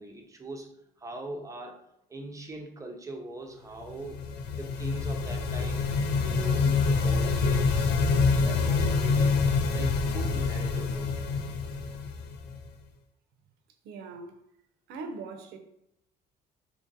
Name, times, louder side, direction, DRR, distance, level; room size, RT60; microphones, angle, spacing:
voice 1, 0.0-4.2 4.5-5.9 6.2-7.9 8.4-11.2, right 2 dB, 20° right, 0.6 m, -41 dB
sound 1, 3.9-12.7, left 4 dB, 85° left, 0.5 m, -26 dB
voice 2, 13.8-14.4 14.9-15.6, right 4 dB, 90° right, 0.6 m, -40 dB
3.0 x 2.6 x 3.9 m
cardioid pair, 110°, 17 cm